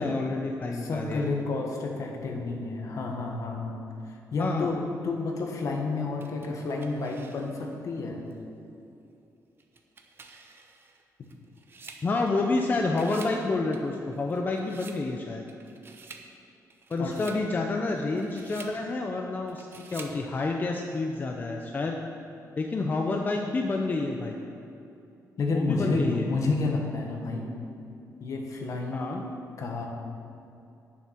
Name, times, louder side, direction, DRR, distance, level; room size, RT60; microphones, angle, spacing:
voice 1, 0.0-1.3 4.4-4.7 12.0-15.4 16.9-22.0 22.6-24.4 25.5-26.2 28.9-29.2, left 3 dB, 30° left, 2 dB, 0.6 m, -29 dB
voice 2, 0.7-8.2 17.0-17.1 25.4-27.5 28.2-29.2 29.6-29.9, left 3 dB, 55° left, 1 dB, 1.4 m, -30 dB
sound 1, 6.2-7.7 8.3-8.4 9.6-12.6 12.9-13.4 13.7-15.0 15.5-16.3 16.7-17.4 18.0-18.8 19.5-20.2, right 4 dB, 35° right, 0.8 m, -49 dB
10.0 x 7.2 x 5.8 m, 2.7 s
wide cardioid pair, 155°, 6 cm